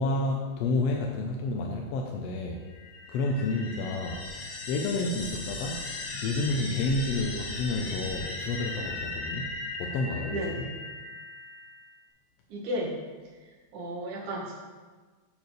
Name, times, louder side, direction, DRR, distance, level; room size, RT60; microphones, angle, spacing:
voice 1, 0.0-2.6 3.1-4.4 4.7-5.9 6.2-10.6, left 2 dB, 70° left, 1 dB, 1.6 m, -30 dB
sound 1, 2.7-12.0, left 2 dB, 55° left, 1.4 m, -38 dB
voice 2, 10.3-10.7 12.5-12.9 13.7-14.5, equal, 80° right, -2 dB, 3.0 m, -33 dB
8.0 x 4.6 x 6.7 m, 1.4 s
omnidirectional pair, 3.4 m